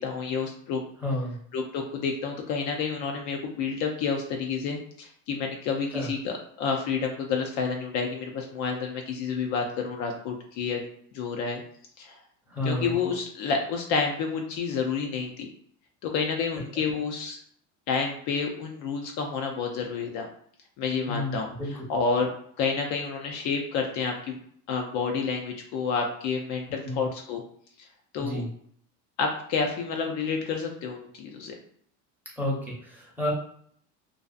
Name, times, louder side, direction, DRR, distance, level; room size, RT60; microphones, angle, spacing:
voice 1, 0.0-0.8 1.5-10.8 11.1-11.6 12.0-12.2 12.6-15.5 16.0-17.4 17.9-20.3 20.8-22.3 22.6-24.4 24.7-27.4 28.1-28.4 29.2-31.5, left 5 dB, 55° left, 3 dB, 0.4 m, -29 dB
voice 2, 1.0-1.4 5.9-6.1 12.5-13.0 21.1-21.7 26.8-27.1 28.2-28.5 32.4-33.3, left 1 dB, 5° right, -4 dB, 0.8 m, -30 dB
2.5 x 2.3 x 2.3 m, 0.63 s
supercardioid pair, 130°, 36 cm